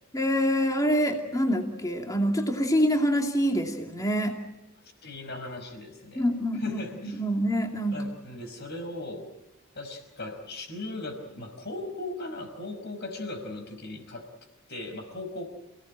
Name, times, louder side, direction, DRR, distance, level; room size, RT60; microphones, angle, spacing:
voice 1, 0.1-4.4 6.1-6.8 7.0-8.0, equal, 15° left, 3 dB, 2.5 m, -26 dB
voice 2, 5.0-6.3 6.5-7.2 7.9-9.3 9.8-14.3 14.7-15.5, left 2 dB, 50° left, 6 dB, 5.5 m, -38 dB
29.0 x 18.0 x 8.9 m, 0.94 s
head